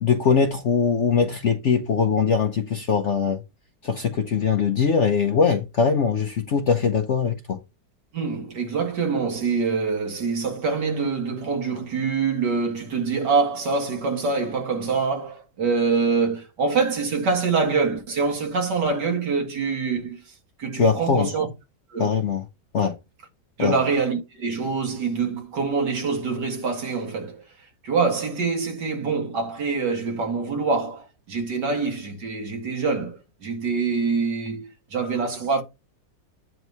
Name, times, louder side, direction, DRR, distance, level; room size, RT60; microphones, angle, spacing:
voice 1, 0.0-3.4 3.8-7.6 20.7-21.3 22.0-22.5 22.7-23.0 23.6-23.8, left 6 dB, 60° left, 0.8 m, -21 dB
voice 2, 8.1-20.2 20.6-21.5 21.9-22.1 23.6-27.4 27.8-35.6, right 4 dB, 70° right, 2.5 m, -25 dB
9.2 x 3.1 x 5.3 m
omnidirectional pair, 1.9 m